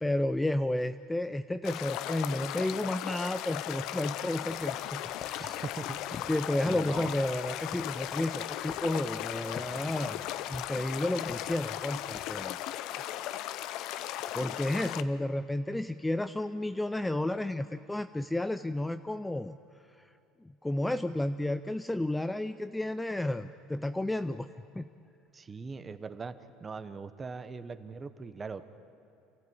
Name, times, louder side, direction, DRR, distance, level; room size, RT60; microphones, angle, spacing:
voice 1, 0.0-5.6 6.3-12.6 12.9-13.1 14.3-19.5 20.6-24.5 24.8-24.9, left 1 dB, 5° left, 10 dB, 0.5 m, -32 dB
sound 1, 1.6-15.0, left 13 dB, 65° left, 0.7 m, -37 dB
sound 2, 4.5-12.5, left 6 dB, 30° left, 0.8 m, -50 dB
voice 2, 5.4-6.3 6.6-7.1 25.3-28.7, right 4 dB, 20° right, 11 dB, 1.1 m, -41 dB
28.0 x 15.0 x 8.8 m, 2.7 s
cardioid pair, 130°, 0 cm